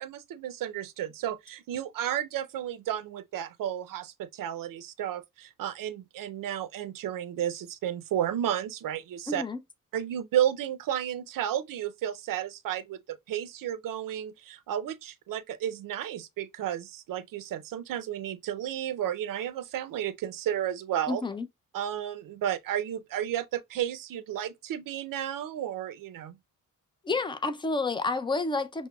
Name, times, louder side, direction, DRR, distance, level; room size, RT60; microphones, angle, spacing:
voice 1, 0.0-9.4 9.9-21.2 21.7-26.4, right 10 dB, 85° right, 0.5 m, -32 dB
voice 2, 9.3-9.6 21.1-21.5 27.0-28.9, left 3 dB, 15° left, 0.4 m, -29 dB
5.8 x 2.1 x 2.2 m
wide cardioid pair, 140°, 32 cm